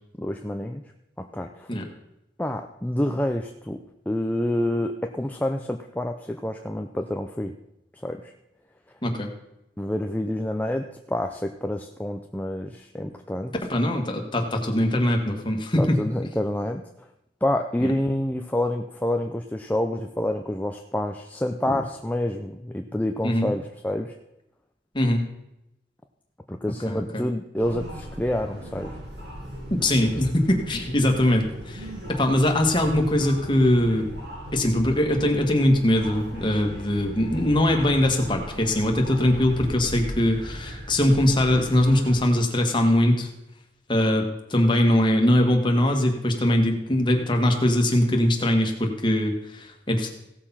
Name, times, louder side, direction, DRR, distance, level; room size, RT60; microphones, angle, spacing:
voice 1, 0.2-0.8 1.2-1.7 2.4-3.8 4.1-7.5 8.0-8.3 9.8-13.5 15.8-16.8 17.4-24.1 26.5-29.0, left 1 dB, 10° left, 4 dB, 0.6 m, -28 dB
voice 2, 13.6-16.0 17.8-17.9 21.7-21.8 23.2-23.5 24.9-25.2 26.9-27.2 29.7-34.1 34.5-43.3 43.9-50.1, left 1 dB, 30° left, 2 dB, 1.8 m, -22 dB
sound 1, 27.6-42.1, equal, 75° right, 5.8 m, -37 dB
16.5 x 6.7 x 5.7 m, 0.86 s
head